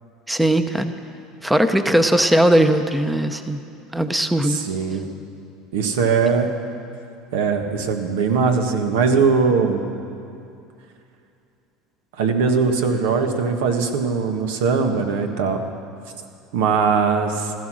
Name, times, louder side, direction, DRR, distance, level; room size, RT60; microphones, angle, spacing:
voice 1, 0.3-0.9 1.4-3.6 3.9-4.6, right 1 dB, 5° right, 8 dB, 0.7 m, -18 dB
voice 2, 4.4-5.1 5.7-6.5 7.3-9.8 12.2-15.6 16.5-17.5, right 5 dB, 90° right, 5 dB, 1.6 m, -20 dB
16.0 x 14.5 x 6.3 m, 2.6 s
supercardioid pair, 125°, 0 cm